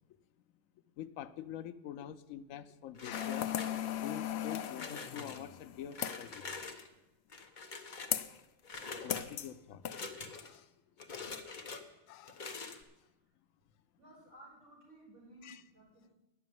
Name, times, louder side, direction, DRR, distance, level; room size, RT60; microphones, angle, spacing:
voice 1, 1.0-6.6 9.0-9.9 10.3-10.7 11.1-11.7 12.1-12.5 15.4-15.6, left 10 dB, 85° left, 13 dB, 1.0 m, -46 dB
sound 1, 3.0-4.1 4.5-5.4 5.9-6.9 7.3-8.2 8.6-9.3 9.8-10.6 11.0-11.8 12.2-12.8, left 4 dB, 40° left, 1.0 m, -45 dB
sound 2, 3.1-6.3 8.1-8.4 9.1-9.5 9.8-10.0, left 10 dB, 65° left, 0.7 m, -37 dB
voice 2, 14.0-16.2, right 1 dB, 60° right, -5 dB, 5.8 m, -57 dB
10.5 x 6.8 x 9.3 m, 0.98 s
omnidirectional pair, 1.4 m